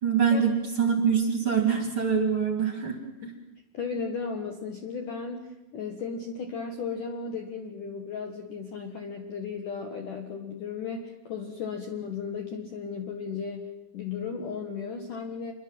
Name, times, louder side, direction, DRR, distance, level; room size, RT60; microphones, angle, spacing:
voice 1, 0.0-3.0, right 6 dB, 30° right, 4 dB, 3.0 m, -24 dB
voice 2, 3.7-15.5, left 5 dB, 60° left, 4 dB, 2.4 m, -35 dB
27.0 x 22.5 x 7.7 m, 0.96 s
omnidirectional pair, 5.7 m